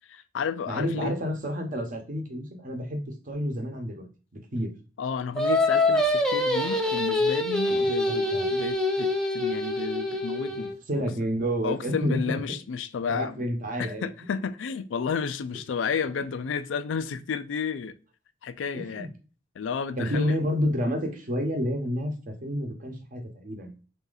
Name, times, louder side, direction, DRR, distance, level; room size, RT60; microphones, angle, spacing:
voice 1, 0.1-1.2 5.0-9.1 9.3-11.0 11.6-13.5 13.8-17.9 18.4-19.1 19.6-20.4, left 6 dB, 90° left, 0.4 m, -32 dB
voice 2, 0.7-4.0 4.3-4.7 7.7-7.8 8.1-8.5 10.4-10.5 10.9-12.2 13.1-14.1 18.7-19.1 20.0-23.7, equal, 45° right, 0.9 m, -29 dB
Singing, 5.4-10.7, left 1 dB, 5° left, 0.5 m, -25 dB
3.5 x 2.8 x 3.8 m
head